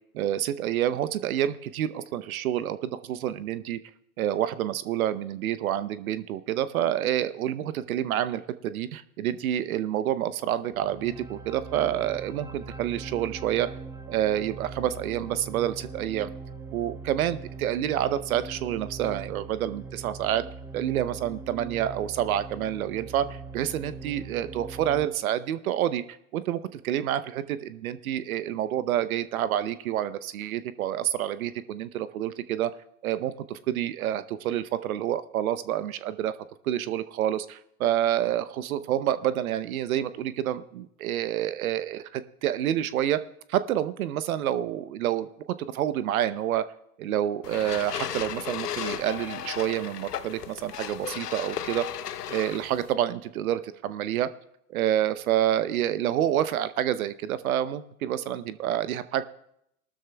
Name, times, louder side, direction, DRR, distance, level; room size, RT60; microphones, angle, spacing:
voice 1, 0.1-3.8 4.2-13.7 14.1-16.3 16.7-20.4 20.7-26.0 26.3-32.7 33.0-36.3 36.6-43.2 43.5-45.3 45.7-46.6 47.0-51.9 52.3-54.3 54.7-59.2, right 11 dB, 65° right, 13 dB, 0.8 m, -28 dB
sound 1, 10.7-25.1, right 4 dB, 5° right, 0.6 m, -41 dB
sound 2, 47.4-52.9, left 9 dB, 90° left, 0.9 m, -35 dB
19.0 x 13.0 x 2.3 m, 0.74 s
hypercardioid pair, 115°, 46 cm